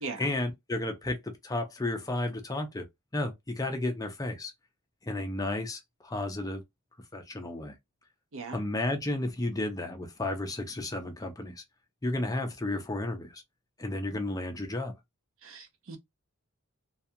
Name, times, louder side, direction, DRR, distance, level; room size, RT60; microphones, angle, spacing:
voice 1, 0.1-2.9 3.1-4.5 5.1-6.6 7.1-7.7 8.5-11.6 12.0-13.4 13.8-14.9, left 2 dB, 15° left, 0.5 m, -32 dB
voice 2, 15.4-16.0, right 4 dB, 60° right, 0.6 m, -39 dB
2.3 x 2.3 x 2.7 m
head